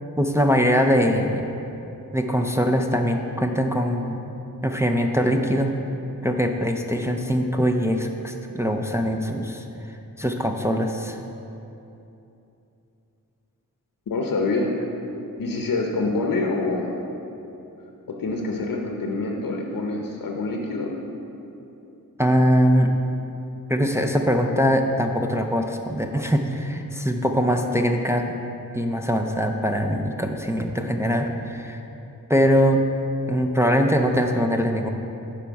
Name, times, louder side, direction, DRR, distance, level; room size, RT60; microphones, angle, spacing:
voice 1, 0.2-1.5 2.1-4.2 4.6-5.8 6.2-11.2 22.2-22.9 23.7-28.3 28.7-31.8 32.3-32.8 33.3-34.9, equal, 10° right, 2 dB, 0.5 m, -22 dB
voice 2, 14.1-14.7 15.4-16.9 18.1-20.9, left 3 dB, 70° left, 1 dB, 0.8 m, -26 dB
11.0 x 4.6 x 4.7 m, 2.8 s
wide cardioid pair, 70°, 36 cm